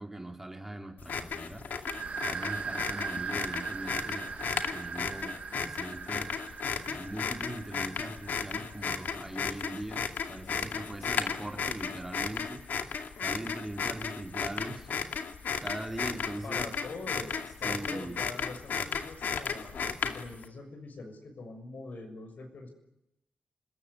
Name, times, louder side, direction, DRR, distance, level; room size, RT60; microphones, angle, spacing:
voice 1, 0.0-1.6 2.2-6.6 6.9-12.6 13.2-14.9 15.6-16.7 17.6-18.2, right 1 dB, 10° right, 3 dB, 3.5 m, -41 dB
sound 1, 1.0-20.4, left 6 dB, 85° left, 2.4 m, -34 dB
sound 2, 1.9-9.3, right 6 dB, 50° right, 1.4 m, -40 dB
voice 2, 16.4-22.7, left 3 dB, 65° left, 5 dB, 6.7 m, -44 dB
27.0 x 21.5 x 9.9 m, 0.86 s
wide cardioid pair, 145°, 3 cm